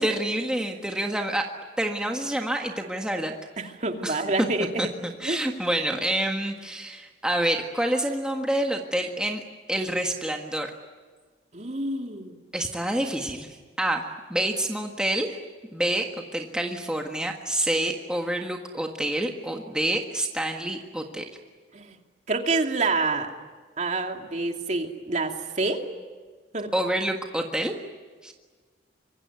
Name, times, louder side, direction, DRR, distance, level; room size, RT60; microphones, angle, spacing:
voice 1, 0.0-1.5 1.8-3.3 4.0-4.2 4.8-9.4 9.7-10.7 12.5-13.5 13.8-15.4 15.7-21.2 26.7-27.7 28.2-28.3, right 1 dB, 5° right, 2 dB, 1.7 m, -27 dB
voice 2, 3.6-4.8 5.2-5.4 11.5-12.3 21.7-22.0 22.3-23.3 23.8-25.9 26.5-26.7, right 3 dB, 45° right, 4 dB, 2.6 m, -27 dB
25.0 x 24.0 x 9.5 m, 1.5 s
head